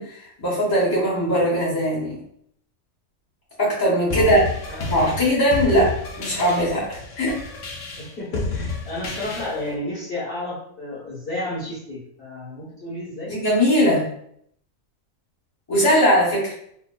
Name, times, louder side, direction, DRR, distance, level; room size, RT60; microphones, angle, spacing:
voice 1, 0.0-2.2 3.6-4.4 4.9-7.3 13.3-14.1 15.7-16.5, equal, 15° left, -7 dB, 1.0 m, -20 dB
voice 2, 4.0-4.3 4.7-4.9 8.0-13.3, left 1 dB, 45° left, -8 dB, 1.2 m, -32 dB
sound 1, 4.1-9.8, left 3 dB, 65° left, 0.8 m, -30 dB
3.3 x 2.5 x 2.2 m, 0.68 s
omnidirectional pair, 1.5 m